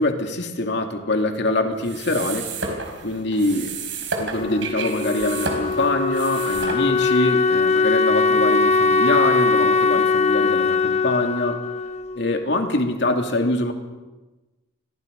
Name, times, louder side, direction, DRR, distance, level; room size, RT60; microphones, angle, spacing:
voice 1, 0.0-2.5 3.0-3.7 4.2-11.6 12.2-13.7, left 2 dB, 60° left, 4 dB, 2.8 m, -24 dB
sound 1, 1.8-7.2, right 4 dB, 70° right, 4.4 m, -31 dB
Wind instrument woodwind instrument, 4.4-13.0, left 4 dB, 35° left, 0.9 m, -21 dB
29.0 x 23.0 x 5.4 m, 1.2 s
head